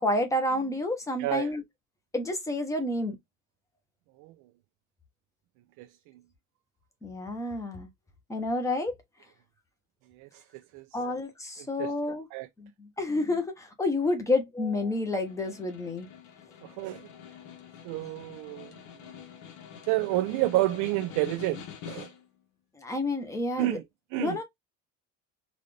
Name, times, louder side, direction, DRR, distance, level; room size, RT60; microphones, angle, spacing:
voice 1, 0.0-1.6 2.1-3.2 7.0-7.9 8.3-9.0 10.9-12.3 12.6-16.1 22.8-23.8 24.2-24.4, left 2 dB, 10° left, 0.8 m, -29 dB
voice 2, 1.2-1.5 4.2-4.3 5.8-5.9 10.1-10.4 10.7-10.8 11.8-11.9 12.3-12.5 16.6-17.1 17.8-18.7 19.8-22.1 23.6-23.8 24.1-24.4, right 17 dB, 80° right, 0.5 m, -29 dB
Snare drum, 14.9-22.4, left 8 dB, 70° left, 1.3 m, -46 dB
4.0 x 2.5 x 3.2 m
cardioid pair, 170°, 30 cm